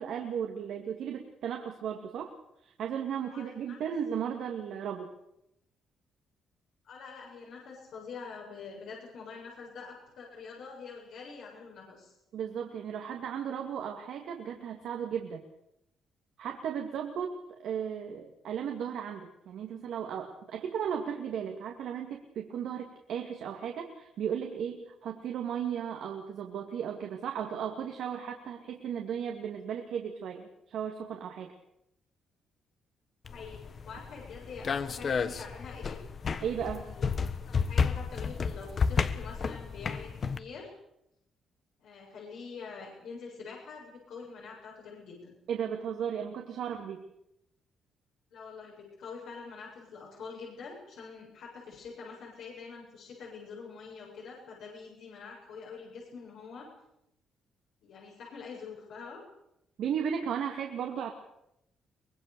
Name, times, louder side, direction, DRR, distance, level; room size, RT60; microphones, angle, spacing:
voice 1, 0.0-2.3 2.6-5.1 12.3-15.4 16.4-17.3 17.6-31.5 36.4-36.8 45.5-47.0 59.8-61.1, right 8 dB, 75° right, 3 dB, 2.4 m, -35 dB
voice 2, 3.3-3.8 6.8-12.1 33.3-36.0 36.7-37.1 37.5-40.7 41.8-45.3 48.3-56.7 57.8-59.2, left 5 dB, 75° left, -3 dB, 7.7 m, -45 dB
sound 1, 33.2-40.4, left 5 dB, 45° left, 1.4 m, -32 dB
24.5 x 20.5 x 7.0 m, 0.82 s
cardioid pair, 90°, 0 cm